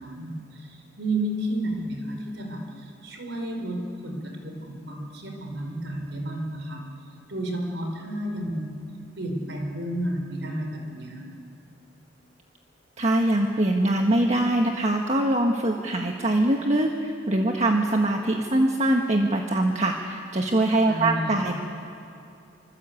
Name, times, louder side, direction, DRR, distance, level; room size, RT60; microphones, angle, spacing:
voice 1, 0.0-6.8 7.3-8.8 9.2-11.3 20.9-21.5, right 1 dB, 70° right, 3 dB, 5.2 m, -31 dB
voice 2, 13.0-21.6, right 1 dB, 35° right, 1 dB, 1.5 m, -23 dB
26.5 x 25.5 x 8.4 m, 2.6 s
head